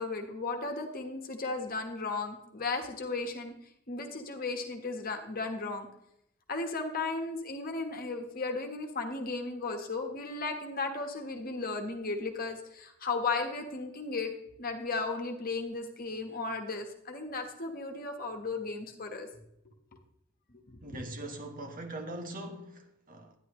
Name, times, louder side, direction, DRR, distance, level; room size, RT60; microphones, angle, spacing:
voice 1, 0.0-3.5 3.9-5.9 6.5-19.3 20.7-20.8, left 3 dB, 45° left, 1.4 m, -35 dB
voice 2, 20.8-23.3, right 1 dB, 45° right, 1.3 m, -41 dB
11.0 x 10.5 x 3.1 m
head